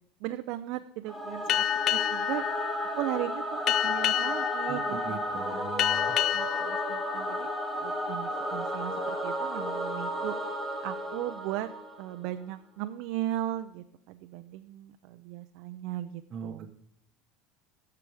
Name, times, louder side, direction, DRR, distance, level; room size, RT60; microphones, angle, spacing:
voice 1, 0.2-2.4 3.0-5.6 6.2-7.5 7.8-10.4 10.8-11.7 12.0-16.7, right 14 dB, 50° right, 8 dB, 0.5 m, -37 dB
Singing / Musical instrument, 1.1-12.3, equal, ahead, 2.1 m, -34 dB
Boat Water vehicle, 1.5-8.6, left 11 dB, 30° left, 0.3 m, -30 dB
voice 2, 5.1-6.2 16.3-16.7, right 7 dB, 25° right, 1 dB, 0.9 m, -40 dB
15.0 x 5.9 x 4.8 m, 0.75 s
cardioid pair, 175°, 0 cm